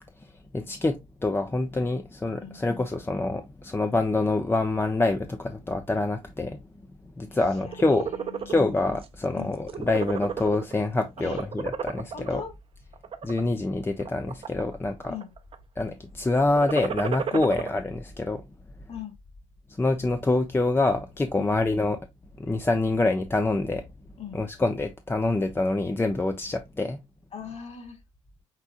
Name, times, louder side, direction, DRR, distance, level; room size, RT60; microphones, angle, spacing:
voice 1, 0.5-6.6 7.2-8.1 8.5-12.4 13.2-15.1 15.8-18.4 19.7-22.0 22.4-23.9 24.3-27.0, left 2 dB, 15° left, 0.6 m, -26 dB
voice 2, 7.3-8.7 9.3-9.5 11.2-11.4 12.1-12.5 15.1-15.3 17.3-17.5 18.9-19.2 21.3-21.6 24.2-24.4 27.3-28.0, left 7 dB, 40° left, 2.4 m, -40 dB
sound 1, 7.6-8.5 9.0-9.2 9.5-10.8 11.2-12.3 12.9-13.4 14.0-14.7 15.0-15.5 16.4-17.7, right 7 dB, 35° right, 0.7 m, -32 dB
5.8 x 3.4 x 2.4 m
figure-of-eight pair, 50°, 16 cm